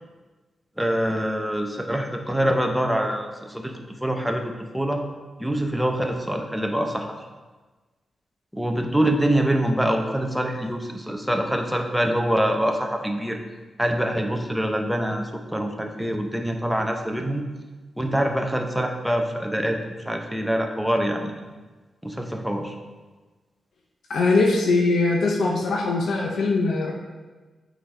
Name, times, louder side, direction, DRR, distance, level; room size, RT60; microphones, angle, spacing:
voice 1, 0.8-5.0 5.4-7.1 8.5-13.4 13.8-17.4 18.0-19.8 20.1-21.4 22.0-22.8, right 1 dB, 5° right, 3 dB, 0.8 m, -25 dB
voice 2, 24.1-26.9, left 3 dB, 85° left, -1 dB, 0.8 m, -21 dB
8.2 x 4.0 x 4.9 m, 1.3 s
cardioid pair, 90°, 0 cm